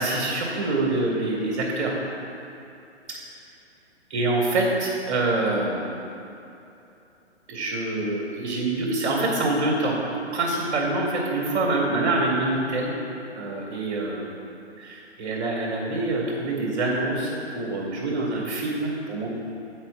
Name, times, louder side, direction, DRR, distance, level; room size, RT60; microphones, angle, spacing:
voice 1, 0.0-2.0 4.1-6.0 7.5-10.0 10.3-13.0 13.3-14.3 14.8-19.3, right 2 dB, 25° right, -3 dB, 1.8 m, -25 dB
8.4 x 4.4 x 5.1 m, 2.8 s
hypercardioid pair, 150°, 34 cm